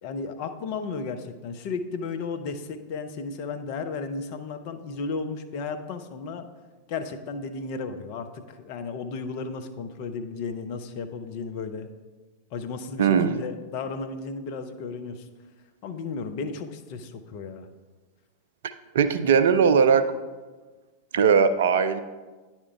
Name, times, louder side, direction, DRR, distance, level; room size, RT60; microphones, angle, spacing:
voice 1, 0.0-6.5 6.9-11.9 12.5-15.3 15.8-17.7, left 4 dB, 45° left, 8 dB, 0.6 m, -34 dB
voice 2, 13.0-13.4 18.6-20.1 21.1-22.0, right 6 dB, 60° right, 12 dB, 0.4 m, -20 dB
9.7 x 4.4 x 3.4 m, 1.3 s
figure-of-eight pair, 90°, 0 cm